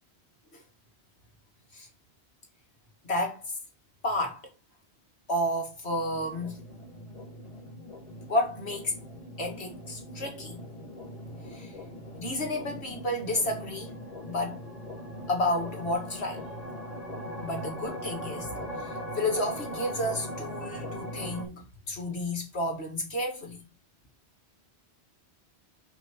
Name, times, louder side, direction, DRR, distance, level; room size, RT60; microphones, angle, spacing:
voice 1, 3.0-3.5 4.0-4.4 5.3-6.6 8.3-9.0 9.4-10.6 11.4-11.7 12.2-14.0 14.3-14.6 15.3-16.4 17.4-23.6, left 1 dB, 75° left, 2.5 m, -31 dB
sound 1, 5.9-21.5, equal, 35° left, 4.3 m, -40 dB
5.7 x 5.3 x 4.6 m
omnidirectional pair, 1.1 m